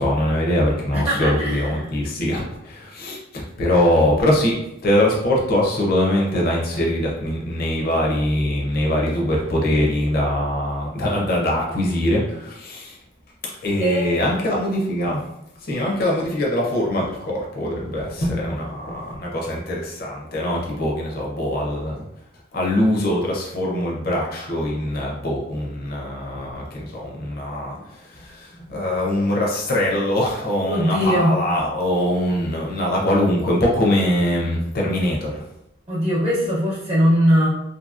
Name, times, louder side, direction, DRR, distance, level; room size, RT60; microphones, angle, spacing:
voice 1, 0.0-4.5 4.8-13.0 13.6-15.2 15.6-22.0 22.5-35.4, left 1 dB, 45° left, -3 dB, 0.6 m, -22 dB
voice 2, 0.9-1.9 13.8-14.1 30.6-31.3 35.9-37.5, equal, 30° right, -6 dB, 0.7 m, -20 dB
2.7 x 2.7 x 2.4 m, 0.84 s
head